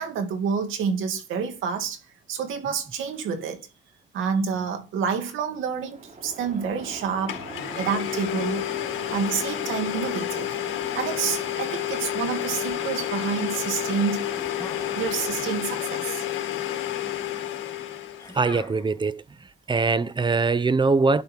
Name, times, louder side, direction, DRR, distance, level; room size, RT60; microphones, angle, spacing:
voice 1, 0.0-2.0 2.3-3.7 4.1-7.4 7.7-8.6 9.1-10.5 10.9-14.3 15.0-16.2, right 6 dB, 85° right, 2.4 m, -28 dB
Waves surf, 5.7-15.5, right 3 dB, 40° right, 3.7 m, -42 dB
Domestic sounds home sounds, 6.8-6.9 7.3-18.3, left 12 dB, 85° left, 1.9 m, -30 dB
sound 1, 14.5-15.5 15.8-16.6 18.2-19.1, left 2 dB, 20° left, 2.8 m, -43 dB
voice 2, 18.3-19.2 19.7-21.2, right 4 dB, 25° right, 0.8 m, -22 dB
12.0 x 5.3 x 4.5 m
cardioid pair, 90°, 20 cm